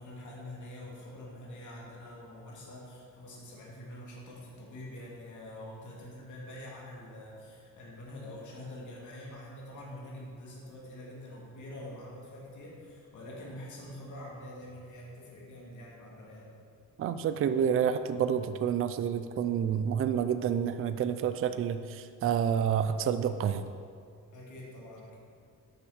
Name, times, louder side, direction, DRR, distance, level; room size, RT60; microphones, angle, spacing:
voice 1, 0.0-16.6 24.3-25.2, left 1 dB, 65° left, -4 dB, 2.4 m, -45 dB
voice 2, 17.0-23.7, right 8 dB, 45° right, 10 dB, 0.4 m, -29 dB
8.1 x 6.0 x 6.5 m, 2.3 s
cardioid pair, 150°, 32 cm